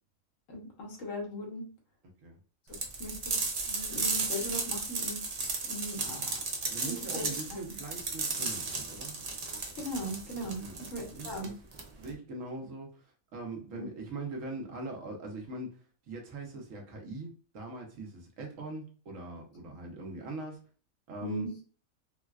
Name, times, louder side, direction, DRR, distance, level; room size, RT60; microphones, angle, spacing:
voice 1, 0.5-1.6 3.0-3.4 3.7-5.2 5.6-6.3 6.9-7.3 9.7-11.5 13.7-13.8 21.2-21.5, equal, 75° left, 0 dB, 1.3 m, -38 dB
sound 1, 2.7-12.1, right 4 dB, 55° right, 0.4 m, -34 dB
voice 2, 6.0-6.4 6.7-9.2 10.6-10.8 11.1-11.5 12.0-13.0 13.3-15.8 16.1-20.6 21.1-21.5, right 2 dB, 75° right, 1 dB, 1.2 m, -41 dB
3.9 x 2.2 x 2.3 m, 0.38 s
omnidirectional pair, 1.4 m